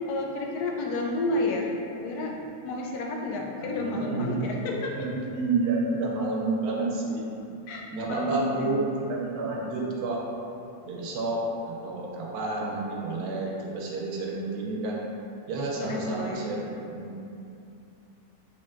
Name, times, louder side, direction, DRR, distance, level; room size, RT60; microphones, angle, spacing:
voice 1, 0.1-2.4 2.6-5.3 7.7-8.8 15.8-16.5, left 2 dB, 85° left, 0 dB, 1.1 m, -31 dB
voice 2, 3.6-4.5 5.0-7.2 7.9-10.2 10.9-15.0 15.5-17.2, right 3 dB, 85° right, -2 dB, 1.2 m, -30 dB
4.2 x 3.5 x 2.4 m, 2.6 s
omnidirectional pair, 1.6 m